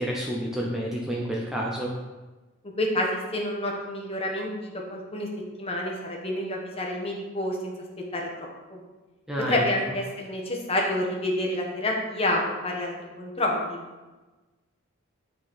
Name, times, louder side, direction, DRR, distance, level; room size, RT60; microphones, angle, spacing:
voice 1, 0.0-1.9 9.3-9.6, equal, 5° right, -4 dB, 0.8 m, -29 dB
voice 2, 2.8-5.3 5.6-7.7 8.1-8.8 9.5-13.8, left 1 dB, 30° left, 0 dB, 1.1 m, -28 dB
9.4 x 4.0 x 4.2 m, 1.2 s
head